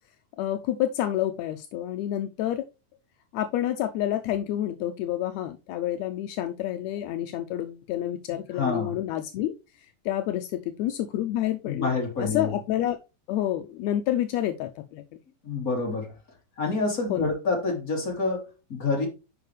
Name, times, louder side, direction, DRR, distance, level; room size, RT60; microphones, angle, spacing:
voice 1, 0.4-2.7 3.3-9.5 10.0-11.9 12.2-13.0 13.3-15.0 17.1-17.3, left 12 dB, 80° left, 1.6 m, -28 dB
voice 2, 8.5-9.0 11.6-12.5 15.4-16.1 16.6-19.1, left 3 dB, 30° left, 3.0 m, -27 dB
9.3 x 5.2 x 3.2 m
omnidirectional pair, 3.6 m